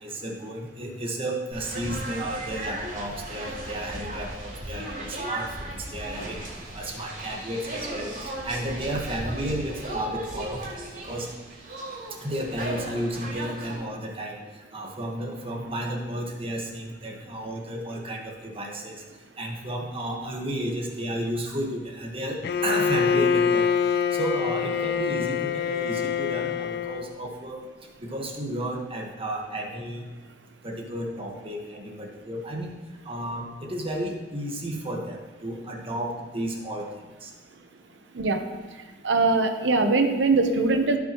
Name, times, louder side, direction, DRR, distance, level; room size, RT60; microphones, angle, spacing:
voice 1, 0.0-6.4 6.7-8.1 8.4-11.3 12.2-14.4 14.7-19.0 19.4-23.7 24.1-27.6 28.0-30.0 30.6-32.8 33.0-36.9 37.2-37.3, right 1 dB, 30° right, 0 dB, 1.5 m, -32 dB
sound 1, 1.5-13.7, right 1 dB, 50° right, 3.3 m, -36 dB
Bowed string instrument, 22.4-27.2, left 7 dB, 60° left, 0.4 m, -25 dB
voice 2, 39.0-41.0, right 3 dB, 80° right, 6 dB, 0.9 m, -21 dB
15.5 x 6.1 x 3.1 m, 1.2 s
head